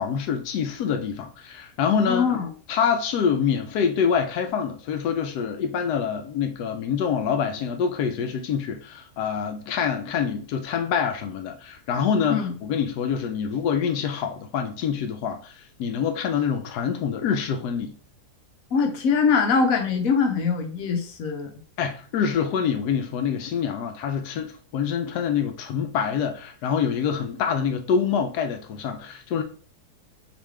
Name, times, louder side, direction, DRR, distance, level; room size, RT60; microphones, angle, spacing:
voice 1, 0.0-2.3 2.7-17.9 21.8-29.4, left 7 dB, 90° left, 1.1 m, -26 dB
voice 2, 2.1-2.5 12.3-12.5 18.7-21.5, left 5 dB, 65° left, 1.3 m, -22 dB
5.2 x 2.9 x 3.2 m
omnidirectional pair, 1.7 m